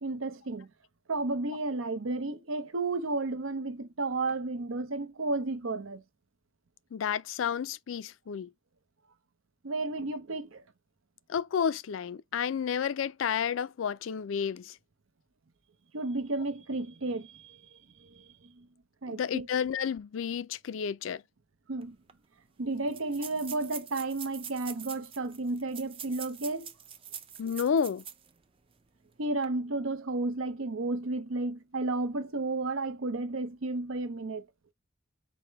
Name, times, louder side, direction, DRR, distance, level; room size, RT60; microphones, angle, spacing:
voice 1, 0.0-0.7 1.1-6.0 9.6-10.6 15.9-18.7 19.0-19.5 21.7-22.0 22.6-26.7 29.2-34.4, right 2 dB, 80° right, 0.8 m, -33 dB
voice 2, 6.9-8.5 11.3-14.8 19.1-21.2 27.4-28.0, left 7 dB, 70° left, 0.4 m, -31 dB
sound 1, 21.8-21.9 22.1-22.2 22.9-28.3 28.7-28.8 29.3-29.4, right 8 dB, 25° right, 0.5 m, -44 dB
4.8 x 2.1 x 4.6 m
head